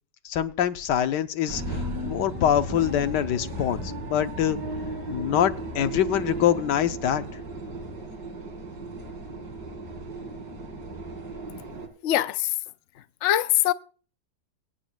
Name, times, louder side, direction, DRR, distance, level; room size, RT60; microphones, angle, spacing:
voice 1, 0.2-4.6 5.1-7.2, left 10 dB, 80° left, 1.4 m, -25 dB
sound 1, 1.5-11.9, right 1 dB, 85° right, 2.9 m, -35 dB
voice 2, 12.0-12.6 13.0-13.7, left 13 dB, 60° left, 0.8 m, -23 dB
23.5 x 8.9 x 2.3 m
omnidirectional pair, 1.8 m